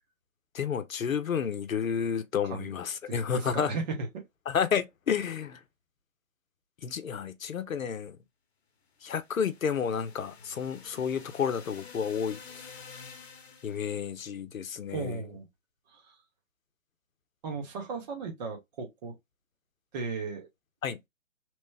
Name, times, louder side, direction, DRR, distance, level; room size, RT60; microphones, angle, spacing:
voice 1, 0.5-3.7 4.5-5.6 6.8-8.2 9.0-12.4 13.6-15.2 20.8-21.0, left 7 dB, 85° left, 0.7 m, -31 dB
voice 2, 3.1-4.2 14.9-15.5 15.9-16.1 17.4-19.1 19.9-20.5, right 4 dB, 30° right, 0.9 m, -36 dB
sound 1, 9.0-14.0, left 5 dB, 50° left, 0.9 m, -49 dB
3.0 x 2.1 x 3.2 m
figure-of-eight pair, 135°, 40 cm